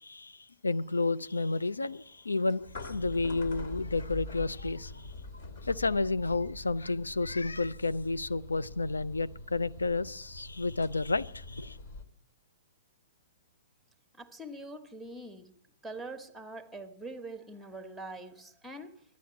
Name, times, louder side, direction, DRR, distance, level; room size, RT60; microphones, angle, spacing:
voice 1, 0.0-5.1 5.6-11.8, left 3 dB, 80° left, 0.5 m, -31 dB
sound 1, 0.7-12.0, left 2 dB, 55° left, 1.8 m, -45 dB
voice 2, 14.1-15.5 15.8-19.0, right 2 dB, ahead, 1.1 m, -44 dB
11.5 x 9.4 x 8.8 m
figure-of-eight pair, 115°, 0 cm